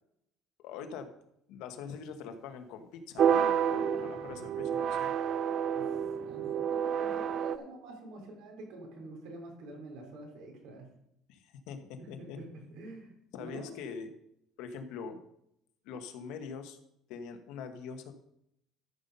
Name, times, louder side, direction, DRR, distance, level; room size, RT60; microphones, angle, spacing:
voice 1, 0.6-1.1 1.5-5.1 11.3-12.4 13.3-14.1 14.6-15.2 15.8-16.8 17.1-18.1, left 6 dB, 75° left, 7 dB, 1.2 m, -43 dB
sound 1, 3.2-7.6, right 8 dB, 40° right, 0.5 m, -29 dB
voice 2, 6.3-10.9 12.0-13.1 13.4-13.7, right 2 dB, 75° right, 1 dB, 3.7 m, -47 dB
13.0 x 5.4 x 5.5 m, 0.77 s
cardioid pair, 155°, 0 cm